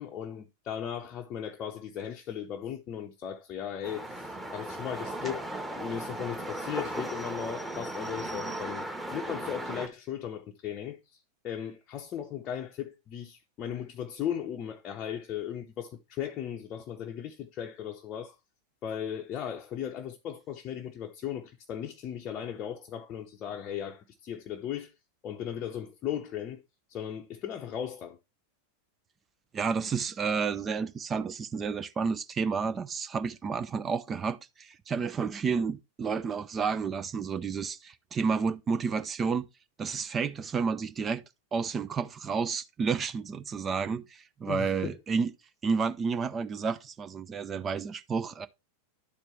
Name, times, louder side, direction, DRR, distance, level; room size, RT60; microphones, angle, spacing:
voice 1, 0.0-5.5 5.7-8.9 9.1-11.2 11.4-18.4 18.8-24.9 25.2-26.6 26.9-28.2 44.5-45.0, left 9 dB, 30° left, 0.6 m, -37 dB
sound 1, 3.8-9.9, right 1 dB, 5° right, 1.3 m, -36 dB
voice 2, 29.5-39.5 39.8-41.2 41.5-45.3 45.6-48.5, right 5 dB, 20° right, 0.4 m, -31 dB
11.0 x 4.5 x 3.1 m
figure-of-eight pair, 90°, 0 cm